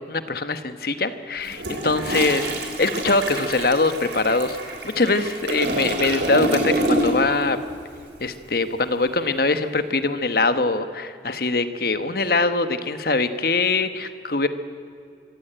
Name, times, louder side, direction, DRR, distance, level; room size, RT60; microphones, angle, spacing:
voice 1, 0.1-4.6 4.8-7.6 8.2-14.5, left 3 dB, 55° left, 10 dB, 1.2 m, -23 dB
Toilet flush, 1.4-7.4 7.7-8.0, right 1 dB, 75° right, 3.6 m, -27 dB
24.5 x 16.0 x 9.0 m, 2.3 s
head